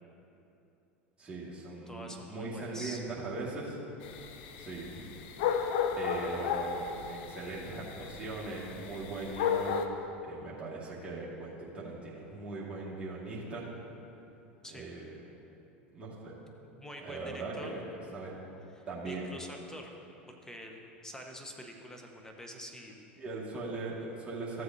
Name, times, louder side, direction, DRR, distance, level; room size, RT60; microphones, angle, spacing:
voice 1, 1.2-3.8 4.6-5.1 5.9-13.7 14.7-15.2 15.9-16.4 17.0-17.8 18.1-18.3 18.9-19.3 23.2-24.6, right 3 dB, 20° right, -8 dB, 2.2 m, -40 dB
voice 2, 1.9-3.0 14.6-14.9 16.7-17.8 18.8-19.9 20.3-23.0, equal, 10° left, 2 dB, 1.3 m, -46 dB
sound 1, 4.0-9.9, left 7 dB, 65° left, 0.7 m, -34 dB
14.0 x 7.9 x 2.8 m, 2.8 s
hypercardioid pair, 85°, 6 cm